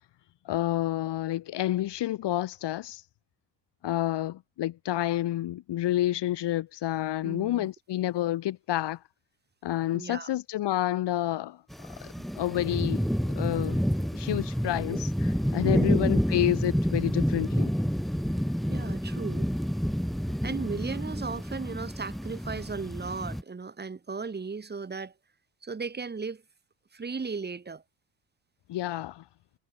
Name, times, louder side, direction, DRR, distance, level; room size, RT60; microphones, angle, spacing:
voice 1, 0.4-3.0 3.8-9.0 9.6-11.6 12.0-13.8 14.1-17.7 28.7-29.2, left 14 dB, 70° left, 4.3 m, -29 dB
voice 2, 7.2-7.7 9.9-10.3 12.2-12.3 15.7-16.2 18.7-19.5 20.4-25.1 25.6-26.4 26.9-27.8, right 4 dB, 25° right, 6.0 m, -36 dB
sound 1, 11.7-23.4, equal, ahead, 2.4 m, -29 dB
cardioid pair, 145°, 43 cm